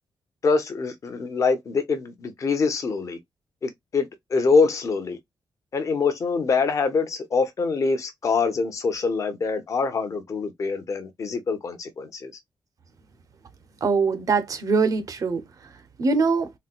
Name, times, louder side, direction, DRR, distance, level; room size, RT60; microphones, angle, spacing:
voice 1, 0.4-3.2 3.6-5.2 5.7-12.3, left 4 dB, 40° left, 0.7 m, -24 dB
voice 2, 13.8-16.5, right 4 dB, 45° right, 0.7 m, -23 dB
4.1 x 2.2 x 2.4 m
wide cardioid pair, 180°, 8 cm